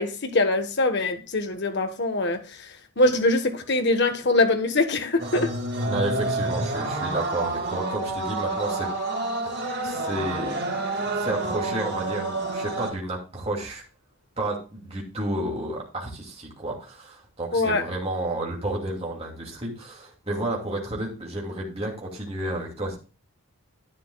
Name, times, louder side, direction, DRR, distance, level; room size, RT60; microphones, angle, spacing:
voice 1, 0.0-2.7 3.0-5.5 17.5-17.8, left 2 dB, 50° left, 1.3 m, -23 dB
sound 1, 5.2-12.9, right 2 dB, 50° right, 2.0 m, -29 dB
voice 2, 5.9-8.9 9.4-13.8 14.4-23.0, right 1 dB, 30° right, 2.5 m, -31 dB
11.0 x 9.4 x 2.3 m
head